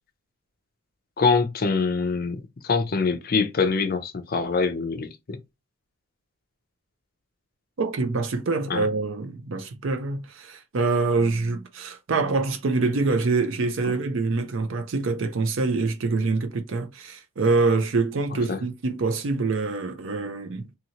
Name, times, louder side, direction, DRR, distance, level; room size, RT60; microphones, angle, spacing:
voice 1, 1.2-5.4 8.7-8.8 13.8-14.0 18.5-18.6, left 4 dB, 45° left, 0.4 m, -24 dB
voice 2, 7.8-20.7, right 3 dB, 60° right, 0.5 m, -25 dB
2.8 x 2.7 x 2.8 m
head